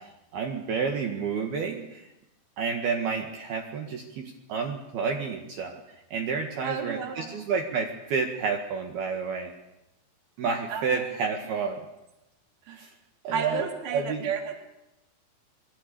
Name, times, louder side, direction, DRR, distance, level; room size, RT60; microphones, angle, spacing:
voice 1, 0.0-2.1 2.6-9.5 10.4-11.8 12.7-12.9 13.2-14.3, right 5 dB, 60° right, 3 dB, 3.3 m, -30 dB
voice 2, 6.6-7.3 10.7-11.1 12.7-12.8 13.3-14.5, right 6 dB, 30° right, 3 dB, 3.1 m, -32 dB
26.0 x 22.5 x 7.0 m, 0.92 s
omnidirectional pair, 5.8 m